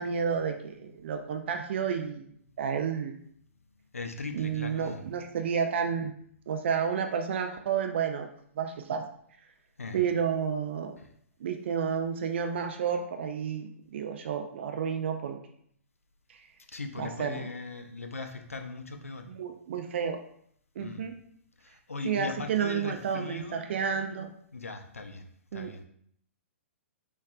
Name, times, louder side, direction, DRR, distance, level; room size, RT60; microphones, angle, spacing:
voice 1, 0.0-2.3 2.6-3.2 4.3-6.1 6.5-8.3 8.6-9.1 9.9-10.9 11.4-15.4 16.3-16.5 17.0-17.5 19.3-20.2 20.8-21.1 22.0-24.3 25.5-25.7, right 7 dB, 55° right, 5 dB, 0.4 m, -31 dB
voice 2, 3.9-5.0 9.8-10.0 11.0-11.1 16.7-19.3 20.8-21.1 21.6-23.7 24.5-25.8, left 3 dB, 85° left, 6 dB, 0.4 m, -39 dB
3.5 x 3.1 x 2.3 m, 0.66 s
figure-of-eight pair, 115°, 7 cm